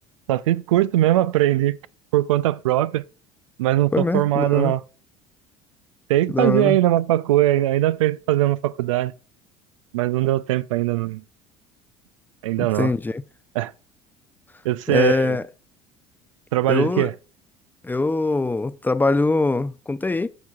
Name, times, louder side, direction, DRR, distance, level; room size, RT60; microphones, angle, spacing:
voice 1, 0.3-1.8 2.1-3.0 3.6-4.8 6.1-9.1 9.9-11.2 12.4-12.9 13.6-13.7 14.6-15.4 16.5-17.1, right 14 dB, 80° right, 0.4 m, -20 dB
voice 2, 3.9-4.7 6.3-6.8 12.6-13.2 14.9-15.5 16.7-17.1 17.8-20.3, left 3 dB, 10° left, 0.5 m, -22 dB
11.5 x 5.9 x 2.3 m
hypercardioid pair, 65°, 16 cm